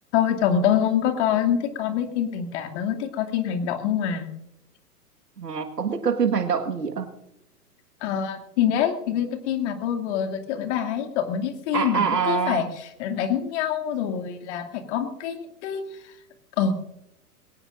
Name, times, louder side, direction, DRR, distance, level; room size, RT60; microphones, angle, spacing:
voice 1, 0.1-4.3 8.0-16.1 16.6-16.7, left 8 dB, 45° left, 6 dB, 2.5 m, -25 dB
voice 2, 5.4-7.1 11.7-12.7, right 6 dB, 85° right, 7 dB, 1.8 m, -25 dB
21.5 x 18.0 x 2.6 m, 0.85 s
hypercardioid pair, 115°, 47 cm